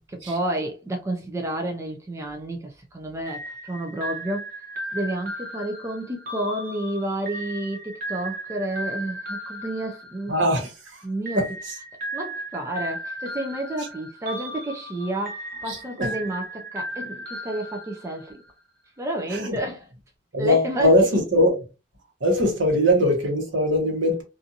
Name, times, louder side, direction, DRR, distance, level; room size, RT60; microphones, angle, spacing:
voice 1, 0.1-4.6 4.9-10.3 11.0-11.5 12.1-18.4 19.0-19.9 20.4-21.2, right 1 dB, 15° right, 0.3 m, -30 dB
sound 1, 3.3-10.7 11.3-18.5, right 1 dB, 50° right, 0.6 m, -36 dB
voice 2, 10.3-11.0 11.3-11.8 13.8-13.9 15.7-16.1 19.3-19.6 20.3-21.6 22.2-24.2, left 1 dB, 75° right, 1.1 m, -21 dB
2.5 x 2.4 x 2.6 m
head